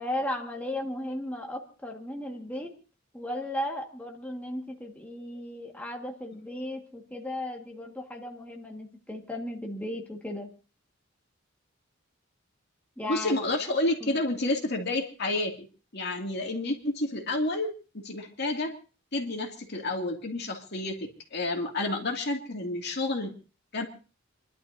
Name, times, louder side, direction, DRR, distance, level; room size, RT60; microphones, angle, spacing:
voice 1, 0.0-2.7 3.1-10.5 13.0-13.4 14.0-14.2, left 1 dB, 10° left, 0 dB, 1.8 m, -35 dB
voice 2, 13.1-15.7 15.9-17.7 17.9-18.7 19.1-23.3 23.7-23.9, left 2 dB, 55° left, 2 dB, 2.6 m, -30 dB
29.0 x 12.0 x 2.8 m, 0.36 s
head